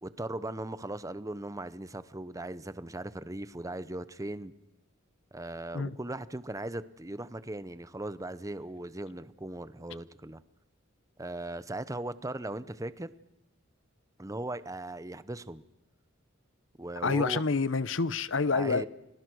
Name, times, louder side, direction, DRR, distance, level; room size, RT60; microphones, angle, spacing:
voice 1, 0.0-4.5 5.3-10.4 11.2-13.1 14.2-15.6 16.8-17.4 18.5-18.9, right 1 dB, 15° right, 0.8 m, -38 dB
voice 2, 17.0-18.9, left 4 dB, 65° left, 0.8 m, -28 dB
30.0 x 21.0 x 6.3 m
head